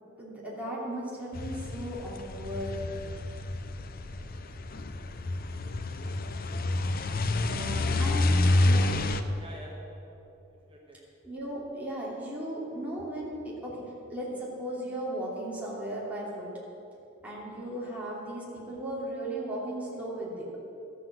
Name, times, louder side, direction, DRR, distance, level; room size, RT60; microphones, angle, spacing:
voice 1, 0.2-2.8 7.9-9.0 11.2-13.8 14.1-16.5 17.2-20.6, right 1 dB, 10° right, -6 dB, 2.8 m, -36 dB
sound 1, 1.3-9.2, left 2 dB, 50° left, 0.6 m, -28 dB
voice 2, 7.4-8.0 9.0-10.1 10.7-11.1, right 2 dB, 30° right, -2 dB, 1.4 m, -47 dB
13.0 x 7.8 x 7.6 m, 2.8 s
head